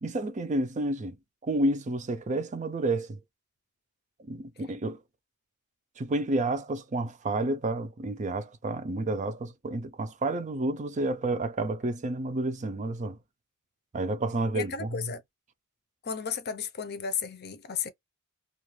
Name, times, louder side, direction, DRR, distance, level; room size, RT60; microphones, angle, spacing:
voice 1, 0.0-1.2 1.4-3.2 4.2-5.0 6.0-13.2 13.9-15.1, right 2 dB, 35° right, 0.5 m, -30 dB
voice 2, 14.5-15.2 16.0-17.9, left 7 dB, 50° left, 0.6 m, -33 dB
2.4 x 2.3 x 3.1 m
head